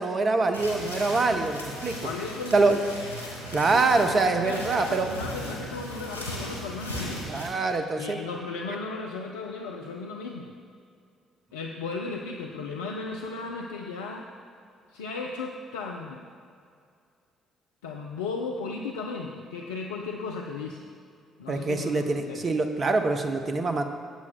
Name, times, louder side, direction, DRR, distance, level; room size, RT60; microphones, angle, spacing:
voice 1, 0.0-2.0 2.5-2.8 3.5-5.1 7.3-8.2 21.5-23.8, right 3 dB, 40° right, 6 dB, 0.8 m, -24 dB
sound 1, 0.5-7.5, equal, 85° right, 1.3 m, -37 dB
voice 2, 1.9-3.0 3.6-7.4 8.0-10.5 11.5-14.2 14.9-16.2 17.8-20.9 21.4-22.4, left 4 dB, 75° left, 0 dB, 0.4 m, -36 dB
17.0 x 8.5 x 2.2 m, 2.3 s
figure-of-eight pair, 45°, 0 cm